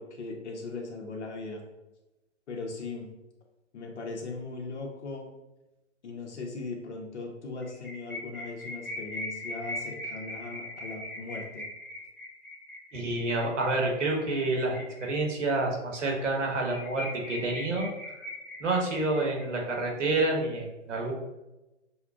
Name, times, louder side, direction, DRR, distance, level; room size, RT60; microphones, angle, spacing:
voice 1, 0.0-1.6 2.5-3.1 3.7-5.3 6.0-11.7, left 3 dB, 65° left, 1 dB, 1.2 m, -39 dB
sound 1, 7.6-15.6 15.9-16.0 16.3-16.4 16.6-19.8, left 1 dB, ahead, 0.4 m, -40 dB
voice 2, 12.9-17.9 18.2-18.3 18.6-21.1, right 2 dB, 80° right, 0 dB, 1.4 m, -28 dB
6.8 x 2.3 x 2.4 m, 1.0 s
hypercardioid pair, 135°, 36 cm